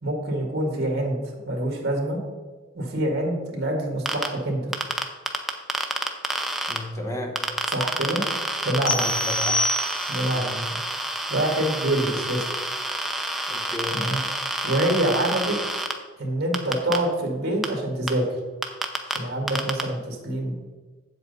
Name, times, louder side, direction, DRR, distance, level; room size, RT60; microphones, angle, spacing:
voice 1, 0.0-2.2 2.7-4.7 7.7-8.2 8.6-9.1 10.1-10.6 11.3-12.5 13.9-14.2 14.6-15.6 16.2-18.2 19.1-20.5, right 1 dB, 55° right, 2 dB, 1.9 m, -26 dB
sound 1, 4.1-4.3 4.7-6.8 7.4-15.9 16.5-17.0 17.6-17.7 18.1-18.2 18.6-19.2 19.5-19.8, right 1 dB, ahead, 0.6 m, -28 dB
voice 2, 6.7-7.4 9.0-9.6 10.3-10.6 13.5-14.0, left 1 dB, 15° left, 3 dB, 1.0 m, -33 dB
sound 2, 8.9-10.4, left 1 dB, 70° left, 1.1 m, -26 dB
7.7 x 7.7 x 4.1 m, 1.4 s
head